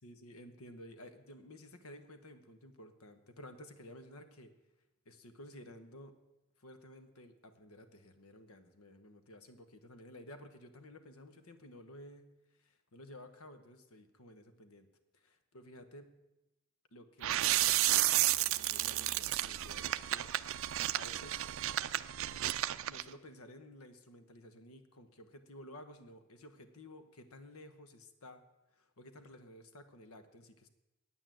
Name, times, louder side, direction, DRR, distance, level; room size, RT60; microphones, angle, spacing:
voice 1, 0.0-4.5 5.0-6.2 6.6-14.9 15.1-16.2 16.9-20.3 20.9-21.5 22.8-30.7, left 1 dB, 80° left, 9 dB, 1.1 m, -54 dB
sound 1, 17.2-23.0, right 15 dB, 65° right, 0.4 m, -32 dB
9.2 x 8.9 x 7.6 m, 0.97 s
head